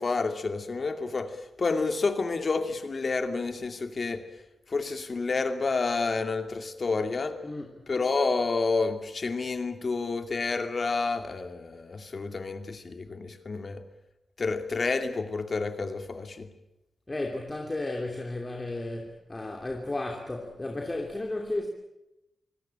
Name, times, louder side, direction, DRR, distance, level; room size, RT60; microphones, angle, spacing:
voice 1, 0.0-1.3 1.6-4.2 4.7-7.4 7.9-13.8 14.4-16.5, left 4 dB, 50° left, 2.5 m, -29 dB
voice 2, 7.4-7.8 17.1-21.7, left 2 dB, 25° left, 2.8 m, -33 dB
25.5 x 18.0 x 8.9 m
cardioid pair, 80°, 0 cm